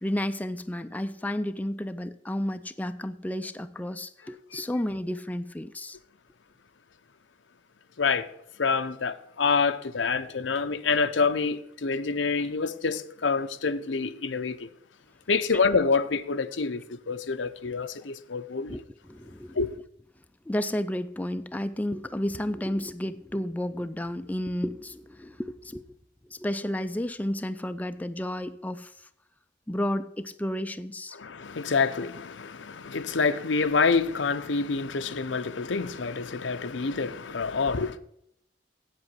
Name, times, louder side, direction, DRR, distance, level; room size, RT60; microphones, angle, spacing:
voice 1, 0.0-6.0 18.7-19.8 20.5-25.8 26.2-29.1 29.7-31.2, left 1 dB, 10° left, 0.4 m, -32 dB
voice 2, 8.0-8.3 8.6-14.7 15.3-18.8 19.6-19.7 31.1-38.0, left 4 dB, 90° left, 0.7 m, -27 dB
8.2 x 7.9 x 8.2 m
head